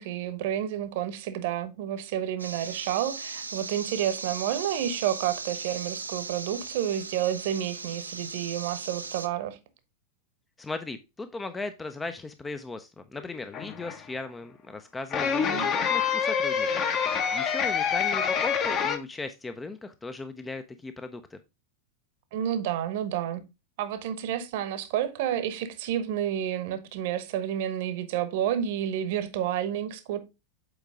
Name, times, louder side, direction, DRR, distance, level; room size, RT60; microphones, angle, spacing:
voice 1, 0.0-9.6 15.4-15.7 22.3-23.4 23.8-30.2, right 10 dB, 50° right, 1.0 m, -30 dB
sound 1, 2.4-9.3, right 4 dB, 80° right, 0.5 m, -38 dB
voice 2, 10.6-16.7 17.1-21.4, left 3 dB, 10° left, 0.6 m, -37 dB
sound 2, 13.2-14.0 15.1-19.0, left 7 dB, 35° left, 1.0 m, -27 dB
7.9 x 4.5 x 3.5 m
figure-of-eight pair, 90°, 0 cm